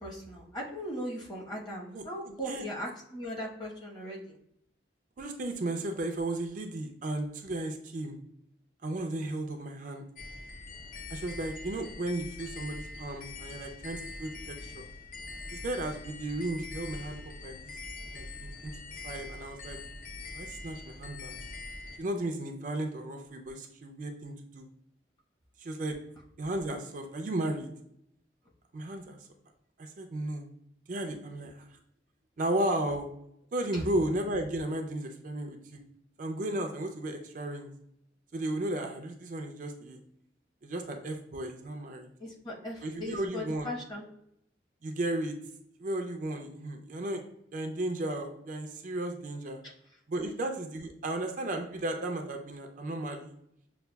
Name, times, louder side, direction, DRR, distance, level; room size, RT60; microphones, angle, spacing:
voice 1, 0.0-4.4 33.7-33.8 42.2-44.0, equal, 25° left, -3 dB, 0.9 m, -38 dB
voice 2, 1.9-2.6 5.2-8.2 8.8-10.1 11.1-14.8 15.5-17.7 18.1-18.7 19.0-19.8 20.3-21.4 22.0-24.7 25.6-26.0 26.4-27.7 28.7-29.2 29.8-30.4 30.9-31.6 32.4-33.1 33.5-35.8 36.2-37.7 38.3-40.0 40.6-42.1 42.8-43.7 44.8-45.4 45.8-47.2 47.5-49.6 50.1-53.3, right 1 dB, 45° right, 4 dB, 0.4 m, -34 dB
sound 1, 10.2-22.0, left 3 dB, 45° left, 0.5 m, -43 dB
6.6 x 2.3 x 2.2 m, 0.74 s
head